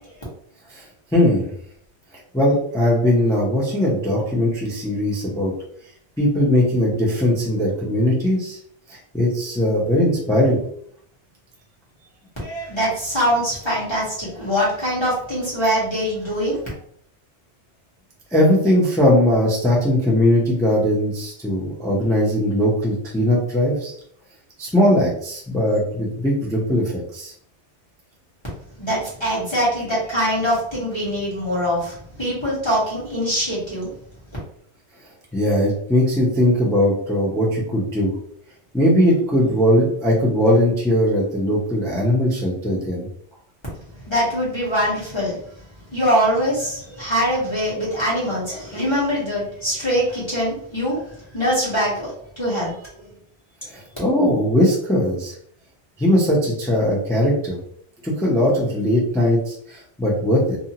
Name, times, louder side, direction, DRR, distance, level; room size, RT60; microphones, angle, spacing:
voice 1, 1.1-1.5 2.3-5.5 6.2-8.6 8.9-10.6 18.3-23.9 24.6-27.3 35.3-38.2 38.7-43.1 53.7-55.3 56.0-57.6 58.0-60.6, left 1 dB, 5° left, -4 dB, 0.5 m, -19 dB
voice 2, 12.4-16.7 28.8-33.9 44.1-45.4 45.9-53.1, equal, 25° left, -8 dB, 1.1 m, -23 dB
2.6 x 2.4 x 2.8 m, 0.63 s
omnidirectional pair, 1.2 m